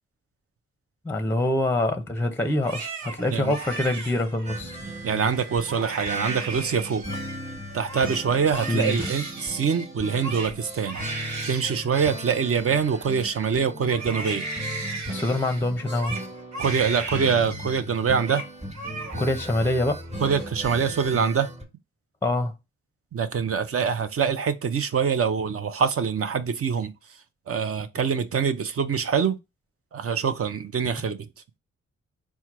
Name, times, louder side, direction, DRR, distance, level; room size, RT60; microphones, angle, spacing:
voice 1, 1.0-4.8 8.7-9.1 15.1-16.2 19.2-20.0 22.2-22.5, left 1 dB, 10° left, 0.6 m, -25 dB
Crying sobbing, 2.5-4.8 5.3-5.4 5.7-7.4 7.7-13.5 13.9-17.8 18.1-18.5 18.7-19.5 19.8-20.4, right 3 dB, 70° right, 1.0 m, -36 dB
sound 1, 4.5-21.6, equal, 25° right, 1.2 m, -37 dB
voice 2, 5.0-7.0 7.7-14.4 16.6-18.4 20.2-21.5 23.1-26.9 27.5-29.4 29.9-31.2, right 6 dB, 50° right, 0.6 m, -24 dB
4.4 x 2.2 x 4.6 m
cardioid pair, 65°, 29 cm